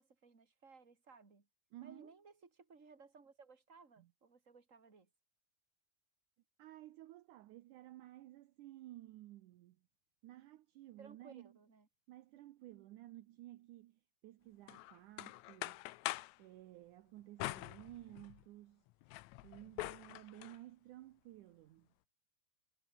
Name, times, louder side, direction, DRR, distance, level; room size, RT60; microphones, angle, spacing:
voice 1, 0.0-1.5 1.8-5.1 11.0-11.9, right 4 dB, 25° right, 3.3 m, -60 dB
voice 2, 1.7-2.1 4.0-4.1 6.6-9.8 10.2-11.6 12.1-15.9 16.4-18.8 19.4-21.9, right 15 dB, 75° right, 2.2 m, -55 dB
sound 1, 14.7-16.4 17.4-18.4 18.9-20.6, left 18 dB, 85° left, 1.6 m, -45 dB
omnidirectional pair, 4.0 m